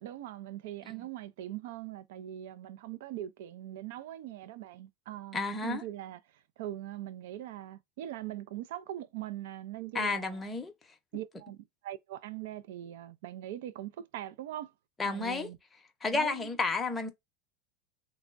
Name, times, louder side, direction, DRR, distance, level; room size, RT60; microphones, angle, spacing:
voice 1, 0.0-10.4 11.1-14.7 15.0-15.6 16.1-16.5, right 13 dB, 75° right, 0.4 m, -41 dB
voice 2, 5.3-5.8 9.9-10.7 15.0-15.5 16.0-17.1, left 4 dB, 15° left, 0.7 m, -31 dB
3.4 x 2.0 x 2.5 m
supercardioid pair, 130°, 0 cm